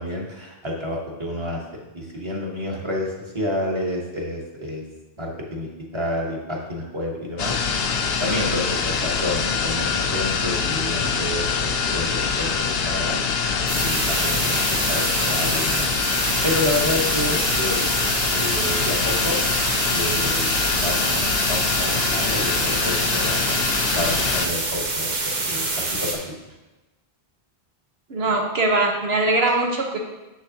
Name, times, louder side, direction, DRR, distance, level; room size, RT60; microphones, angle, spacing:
voice 1, 0.0-4.8 5.2-7.6 7.8-13.2 13.8-15.9 16.4-17.8 18.3-19.4 19.8-23.6 23.9-25.1 25.4-26.3 29.4-29.5, left 1 dB, 30° right, -2 dB, 1.2 m, -29 dB
sound 1, 7.4-24.5, left 5 dB, 75° left, 0.8 m, -24 dB
sound 2, 13.7-26.1, right 2 dB, 50° right, 1.0 m, -26 dB
voice 2, 28.1-30.0, right 2 dB, 80° right, 1 dB, 1.3 m, -21 dB
7.5 x 6.5 x 2.8 m, 1.1 s
omnidirectional pair, 1.0 m